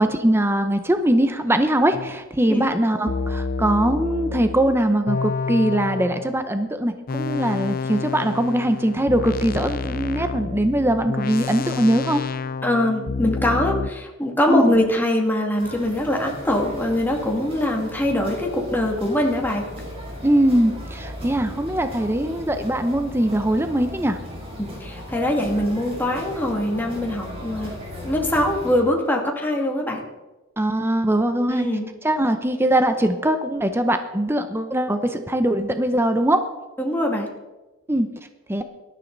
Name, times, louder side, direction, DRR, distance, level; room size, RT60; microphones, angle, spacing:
voice 1, 0.0-12.2 14.5-14.7 20.2-24.2 30.6-31.7 32.0-36.4 37.9-38.1 38.5-38.6, right 1 dB, 10° right, 8 dB, 0.8 m, -21 dB
sound 1, 1.9-2.2 3.1-6.4 7.1-13.9, left 4 dB, 45° left, 0.5 m, -29 dB
voice 2, 12.6-19.6 24.6-27.7 28.0-30.0 31.5-31.9 36.8-37.3, left 1 dB, 10° left, 0 dB, 2.3 m, -23 dB
sound 2, 15.6-28.8, equal, 30° right, 4.9 m, -36 dB
18.5 x 12.5 x 4.0 m, 1.1 s
head